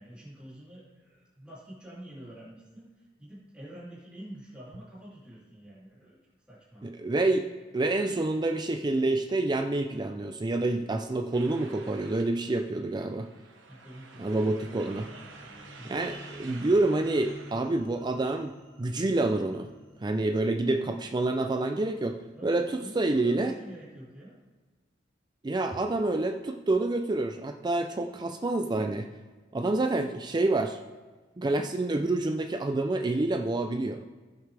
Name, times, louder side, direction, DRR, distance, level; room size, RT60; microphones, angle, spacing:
voice 1, 0.0-6.2 6.5-6.9 13.6-14.7 15.1-16.0 22.4-24.4, right 1 dB, 5° right, -9 dB, 2.8 m, -47 dB
voice 2, 6.8-13.3 14.2-15.1 15.8-19.7 20.0-22.7 23.0-23.5 25.4-29.1 29.5-30.8 31.4-34.0, right 2 dB, 25° right, 6 dB, 0.4 m, -28 dB
sound 1, 11.3-17.6, right 4 dB, 90° right, 1.2 m, -50 dB
sound 2, 14.2-22.3, equal, 25° left, 2.8 m, -51 dB
15.5 x 6.5 x 3.4 m, 1.3 s
head